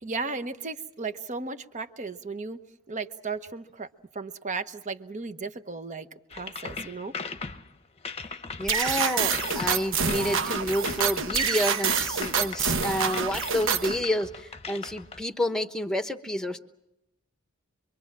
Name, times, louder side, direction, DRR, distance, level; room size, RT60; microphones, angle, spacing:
voice 1, 0.0-2.6 2.9-3.9 4.1-7.1 8.6-8.7, right 4 dB, 35° right, 9 dB, 1.0 m, -35 dB
sound 1, 6.3-15.2, left 5 dB, 30° left, 1.0 m, -39 dB
voice 2, 8.6-16.6, left 1 dB, 5° left, 8 dB, 1.1 m, -29 dB
sound 2, 8.7-14.0, right 6 dB, 60° right, 1.1 m, -27 dB
26.5 x 23.5 x 7.5 m, 0.86 s
head